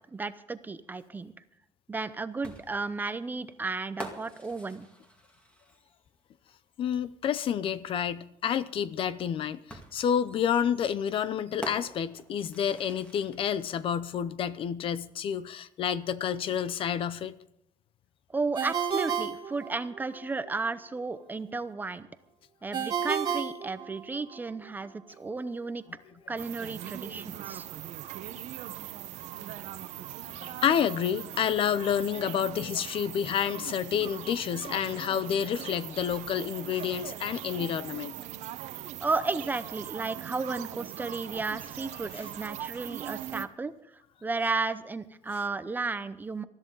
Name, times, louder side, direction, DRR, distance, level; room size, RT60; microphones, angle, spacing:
voice 1, 0.1-1.3 1.9-4.9 18.3-22.1 22.6-25.8 26.3-27.7 39.0-43.7 44.2-46.4, right 3 dB, 15° right, 0.7 m, -33 dB
sound 1, 2.4-6.1 7.6-7.7 9.7-13.6, equal, 10° left, 2.2 m, -46 dB
voice 2, 6.8-17.3 30.3-38.2 42.1-42.3, left 8 dB, 45° left, 0.6 m, -29 dB
Ringtone, 18.5-20.2 22.7-24.4, right 7 dB, 35° right, 1.7 m, -32 dB
sound 2, 26.4-43.5, right 12 dB, 65° right, 1.1 m, -40 dB
20.5 x 13.5 x 3.9 m
cardioid pair, 170°, 13 cm